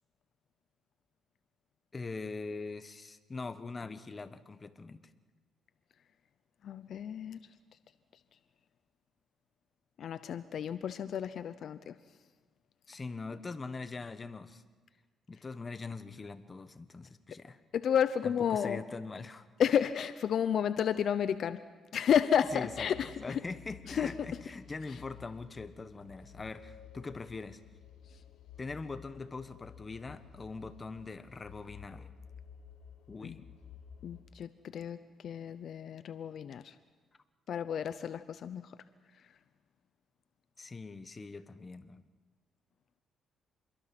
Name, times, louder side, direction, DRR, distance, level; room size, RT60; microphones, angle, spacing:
voice 1, 1.9-5.0 12.9-14.6 15.3-17.6 18.2-19.5 22.5-27.6 28.6-32.1 33.1-33.4 40.6-42.0, left 3 dB, 30° left, 11 dB, 1.3 m, -42 dB
voice 2, 6.6-7.4 10.0-11.9 17.7-18.8 19.6-21.6 21.9-23.1 24.0-24.1 33.2-33.4 34.0-35.0 35.2-36.7 37.5-38.6, left 8 dB, 65° left, 12 dB, 0.8 m, -31 dB
sound 1, 22.4-34.2, left 7 dB, 80° left, 4.6 m, -53 dB
27.5 x 22.5 x 6.1 m, 1.4 s
cardioid pair, 90°, 0 cm